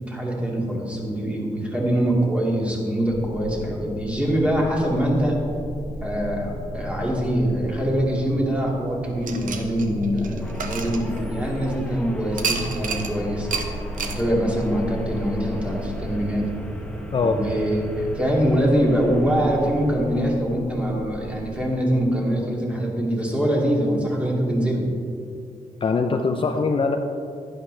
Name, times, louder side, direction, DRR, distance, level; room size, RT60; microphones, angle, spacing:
voice 1, 0.0-5.4 6.0-13.5 14.0-16.4 17.2-24.8, equal, 10° right, -3 dB, 2.2 m, -23 dB
sound 1, 3.1-21.6, equal, 45° right, 2.5 m, -35 dB
sound 2, 9.2-11.6 12.4-13.1 13.5-13.7 14.0-14.2, right 5 dB, 80° right, 0.9 m, -30 dB
sound 3, 10.4-20.8, equal, 5° left, 0.9 m, -43 dB
voice 2, 25.8-27.0, left 4 dB, 40° left, 4 dB, 0.5 m, -22 dB
11.0 x 10.5 x 3.3 m, 2.5 s
wide cardioid pair, 130°, 14 cm